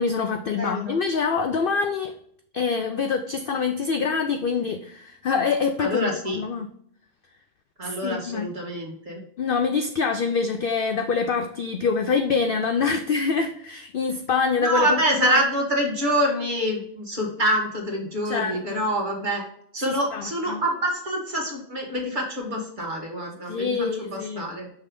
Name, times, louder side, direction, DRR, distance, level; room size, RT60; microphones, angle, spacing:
voice 1, 0.0-2.1 2.5-6.7 7.8-8.5 9.4-15.4 18.2-18.8 19.8-20.6 23.5-24.4, left 5 dB, 70° left, 6 dB, 0.5 m, -25 dB
voice 2, 0.5-1.0 5.8-6.4 7.8-9.2 14.5-19.4 19.7-24.7, equal, 35° right, -1 dB, 1.6 m, -26 dB
6.0 x 3.2 x 5.1 m, 0.66 s
omnidirectional pair, 1.4 m